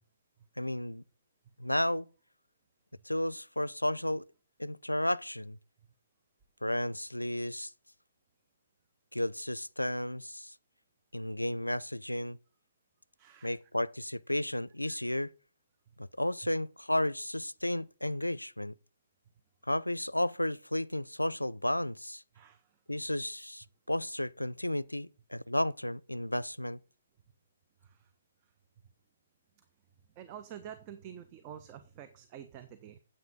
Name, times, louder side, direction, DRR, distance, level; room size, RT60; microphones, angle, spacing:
voice 1, 0.6-1.0 1.6-2.1 3.1-4.2 4.6-5.6 6.6-7.7 9.1-10.5 11.1-12.4 13.4-15.3 16.0-18.7 19.7-22.2 22.9-26.8, left 1 dB, 90° left, 0.4 m, -33 dB
voice 2, 13.2-13.6 14.9-15.0 22.3-22.7 27.8-28.1 30.2-33.0, right 9 dB, 25° right, 0.9 m, -48 dB
9.5 x 8.4 x 5.3 m
figure-of-eight pair, 130°, 0 cm